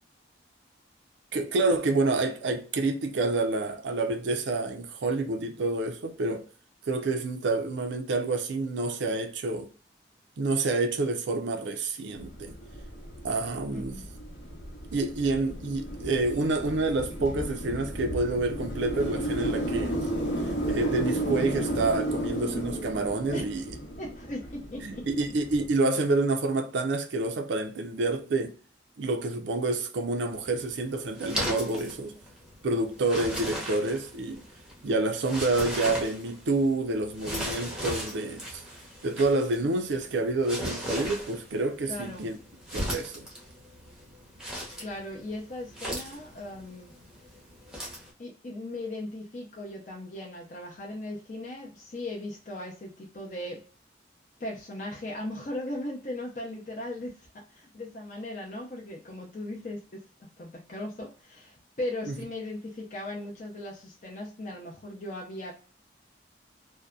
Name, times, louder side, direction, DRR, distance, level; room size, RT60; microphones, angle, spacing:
voice 1, 1.3-6.4 6.9-9.7 10.4-12.6 13.2-14.0 14.9-20.1 20.6-23.6 24.8-28.5 29.0-32.2 32.6-34.4 34.8-38.6 39.0-42.4 42.7-43.3 62.0-62.1, right 2 dB, 80° right, 0.5 m, -28 dB
sound 1, 12.2-25.6, right 1 dB, 70° left, 0.8 m, -33 dB
voice 2, 13.7-14.1 23.3-23.5 24.0-25.1 41.9-42.3 44.8-46.9 48.2-53.6 54.4-60.0 60.4-65.5, left 1 dB, 40° left, 0.5 m, -38 dB
sound 2, 30.3-48.1, equal, 5° right, 0.7 m, -38 dB
2.6 x 2.1 x 2.2 m
head